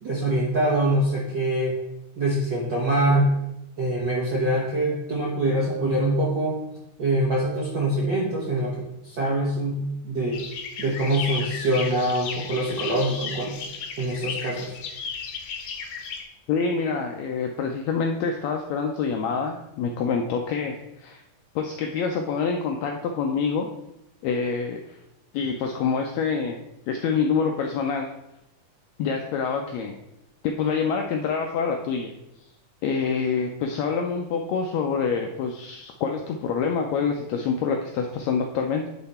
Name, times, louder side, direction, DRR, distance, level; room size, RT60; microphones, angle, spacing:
voice 1, 0.0-1.8 2.2-3.4 3.8-6.6 7.0-10.4 10.8-13.6 14.0-14.8, right 1 dB, 85° right, -4 dB, 0.9 m, -24 dB
sound 1, 10.3-16.2, left 5 dB, 70° left, 1.6 m, -34 dB
voice 2, 16.5-21.2 21.5-23.7 24.2-25.0 25.3-26.6 26.9-28.1 29.0-29.9 30.4-32.1 32.8-38.9, left 5 dB, 85° left, 3 dB, 1.5 m, -26 dB
9.9 x 3.9 x 4.1 m, 0.89 s
omnidirectional pair, 3.7 m